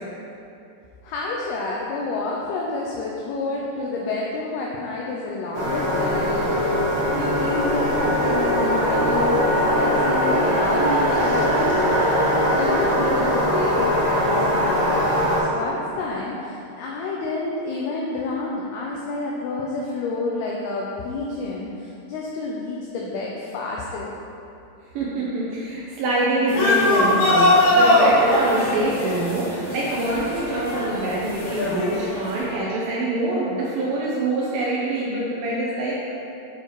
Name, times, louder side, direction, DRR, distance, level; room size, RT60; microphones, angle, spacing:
voice 1, 1.0-24.1, left 3 dB, 85° left, -3 dB, 2.2 m, -29 dB
sound 1, 5.5-15.4, equal, 55° right, 1.7 m, -21 dB
voice 2, 24.9-36.1, right 2 dB, 85° right, -6 dB, 2.0 m, -25 dB
sound 2, 26.5-32.4, left 1 dB, 70° left, 4.1 m, -21 dB
8.7 x 4.6 x 4.7 m, 2.7 s
omnidirectional pair, 5.3 m